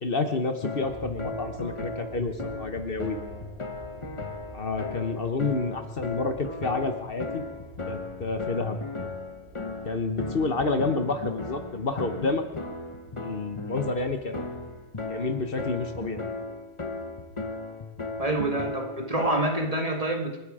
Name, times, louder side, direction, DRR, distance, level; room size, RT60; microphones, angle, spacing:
voice 1, 0.0-3.2 4.5-7.4 7.9-8.8 9.8-12.4 13.2-14.5 15.0-16.2, left 3 dB, 50° left, 7 dB, 1.3 m, -29 dB
sound 1, 0.6-19.7, left 3 dB, 25° left, 1.2 m, -36 dB
sound 2, 0.8-19.0 19.3-19.4, right 2 dB, 90° right, 7.9 m, -50 dB
voice 2, 18.2-20.4, right 1 dB, 30° right, 3 dB, 1.9 m, -27 dB
27.5 x 9.6 x 4.9 m, 1.0 s
omnidirectional pair, 1.2 m